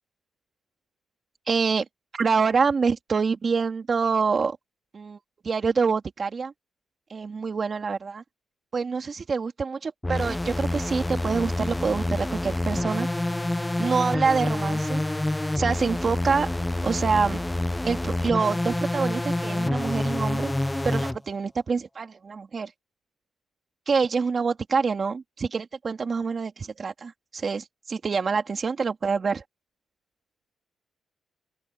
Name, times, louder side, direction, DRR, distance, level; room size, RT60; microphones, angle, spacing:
voice 1, 1.5-1.8 2.1-4.6 4.9-5.2 5.4-6.5 7.1-8.2 8.7-13.1 13.8-15.0 15.5-16.5 16.8-17.4 17.8-20.5 20.8-22.7 23.9-29.4, right 5 dB, 40° right, 3.1 m, -26 dB
sound 1, 10.0-21.2, left 1 dB, 10° left, 0.9 m, -27 dB
open air
cardioid pair, 100°, 0 cm